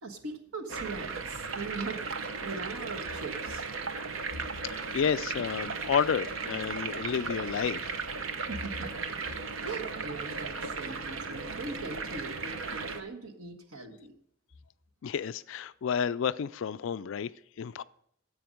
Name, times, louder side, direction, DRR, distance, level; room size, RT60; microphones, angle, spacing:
voice 1, 0.0-3.6 8.5-8.9 9.6-14.1, right 3 dB, 80° right, 1.4 m, -40 dB
sound 1, 0.7-13.0, right 4 dB, 60° right, 0.8 m, -36 dB
voice 2, 4.7-8.0 15.0-17.3 17.6-17.8, left 7 dB, 60° left, 0.3 m, -31 dB
10.5 x 7.8 x 5.1 m
head